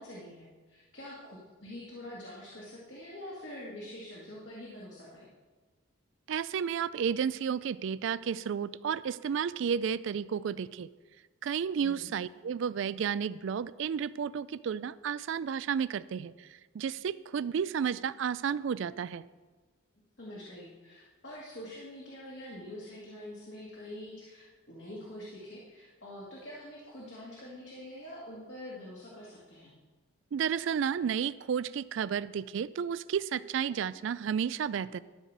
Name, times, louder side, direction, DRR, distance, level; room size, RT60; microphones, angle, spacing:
voice 1, 0.0-5.3 11.8-12.1 20.2-29.7, left 1 dB, 60° left, -5 dB, 2.0 m, -45 dB
voice 2, 6.3-10.9 11.4-16.5 16.7-19.2 30.3-35.0, right 7 dB, 65° right, 17 dB, 0.3 m, -32 dB
12.5 x 4.8 x 6.6 m, 1.3 s
head